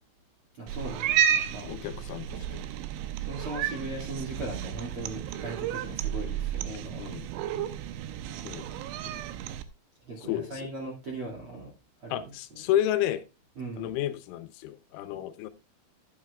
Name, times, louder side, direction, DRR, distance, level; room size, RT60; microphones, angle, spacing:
voice 1, 0.6-1.7 3.2-7.0 10.0-11.7 12.0-12.7 13.5-13.9, right 2 dB, 40° right, 2.1 m, -39 dB
Cat, 0.7-9.6, right 9 dB, 80° right, 2.9 m, -32 dB
voice 2, 1.6-2.4 7.0-7.7 8.5-8.7 10.3-10.5 12.1-13.2 13.8-15.5, left 12 dB, 85° left, 3.2 m, -31 dB
12.5 x 8.6 x 2.3 m
omnidirectional pair, 5.4 m